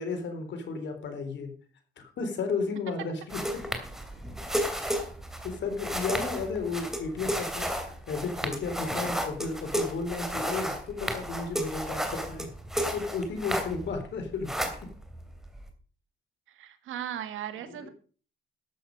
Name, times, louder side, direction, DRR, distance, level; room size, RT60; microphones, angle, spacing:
voice 1, 0.0-1.5 2.0-3.4 5.4-12.5 12.9-14.5 17.6-17.9, left 4 dB, 65° left, 6 dB, 3.7 m, -33 dB
sound 1, 3.3-14.0 14.3-15.7, equal, ahead, 2.8 m, -33 dB
voice 2, 16.5-17.9, right 10 dB, 80° right, 9 dB, 1.8 m, -38 dB
13.0 x 8.5 x 5.3 m, 0.41 s
cardioid pair, 90°, 20 cm